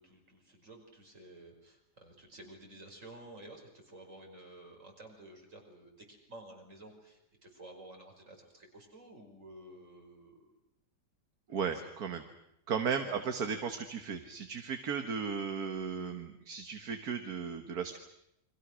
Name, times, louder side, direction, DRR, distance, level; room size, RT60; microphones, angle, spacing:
voice 1, 0.0-10.5 11.7-11.9 13.1-13.2, right 1 dB, 50° right, 2 dB, 5.6 m, -52 dB
voice 2, 11.5-12.2 12.7-18.0, right 6 dB, 70° right, 7 dB, 1.9 m, -35 dB
29.5 x 24.0 x 6.3 m, 0.80 s
omnidirectional pair, 1.7 m